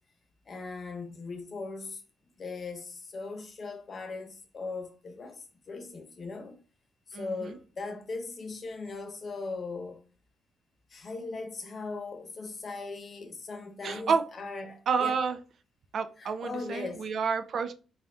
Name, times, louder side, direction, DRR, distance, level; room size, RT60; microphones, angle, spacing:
voice 1, 0.5-2.0 2.4-6.5 7.1-10.0 10.9-15.1 16.2-17.1, left 3 dB, 45° left, 0.9 m, -39 dB
voice 2, 7.1-7.6 13.8-14.2 14.9-15.4 15.9-17.7, right 5 dB, 60° right, 0.4 m, -29 dB
3.6 x 2.5 x 3.4 m
cardioid pair, 90°, 0 cm